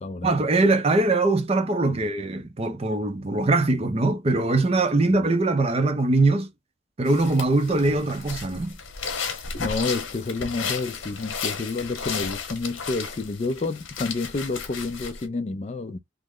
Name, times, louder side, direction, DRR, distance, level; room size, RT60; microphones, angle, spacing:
voice 1, 0.2-6.5 7.0-8.7, right 2 dB, 30° right, 0.5 m, -22 dB
sound 1, 7.1-15.3, left 5 dB, 85° left, 0.9 m, -34 dB
voice 2, 9.6-16.0, left 3 dB, 35° left, 0.4 m, -29 dB
3.1 x 2.0 x 3.6 m
head